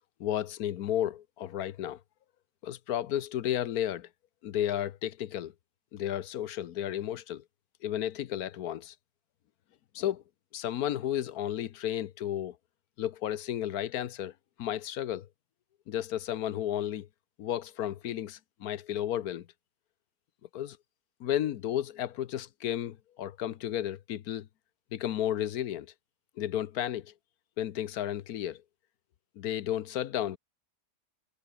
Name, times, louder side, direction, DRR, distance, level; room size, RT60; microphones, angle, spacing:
voice 1, 0.2-2.0 2.6-4.1 4.4-5.5 5.9-7.4 7.8-8.9 9.9-10.2 10.5-12.6 13.0-14.3 14.6-15.3 15.9-17.1 17.4-19.5 20.5-20.8 21.2-24.5 24.9-25.9 26.4-27.1 27.6-28.6 29.4-30.4, left 11 dB, 65° left, 1.2 m, -33 dB
omnidirectional pair, 1.8 m